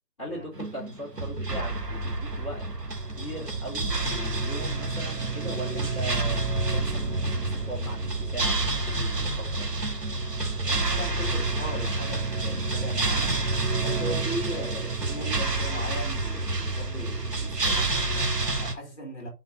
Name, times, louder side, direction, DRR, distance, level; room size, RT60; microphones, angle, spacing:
voice 1, 0.2-2.7 3.2-6.4 6.7-9.7, equal, 20° left, 3.2 m, -39 dB
sound 1, 0.6-18.7, right 2 dB, 80° right, 1.8 m, -28 dB
voice 2, 10.6-13.5 13.8-19.3, right 1 dB, 45° left, 2.7 m, -38 dB
6.3 x 3.7 x 5.3 m
figure-of-eight pair, 175°, 47 cm